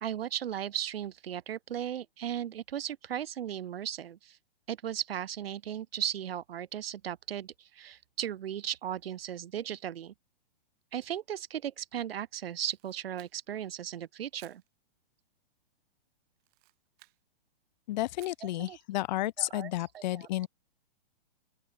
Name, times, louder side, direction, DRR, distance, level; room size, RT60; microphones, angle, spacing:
voice 1, 0.0-4.4 4.7-10.1 10.9-14.6 18.4-18.8 19.4-20.5, right 10 dB, 75° right, 1.6 m, -36 dB
Camera, 12.5-13.7 14.3-14.7 16.4-17.2 18.2-18.5, right 27 dB, 30° right, 4.9 m, -60 dB
voice 2, 17.9-20.5, left 16 dB, 45° left, 0.8 m, -32 dB
open air
hypercardioid pair, 145°, 30 cm